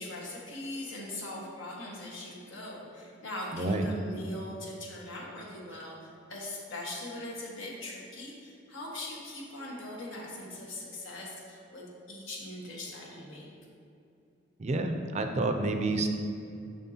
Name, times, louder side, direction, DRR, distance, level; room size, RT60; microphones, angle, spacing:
voice 1, 0.0-13.5, left 1 dB, 85° left, -3 dB, 1.5 m, -41 dB
voice 2, 3.5-3.9 14.6-16.1, right 2 dB, 35° right, 6 dB, 0.4 m, -29 dB
7.0 x 6.2 x 2.8 m, 2.5 s
head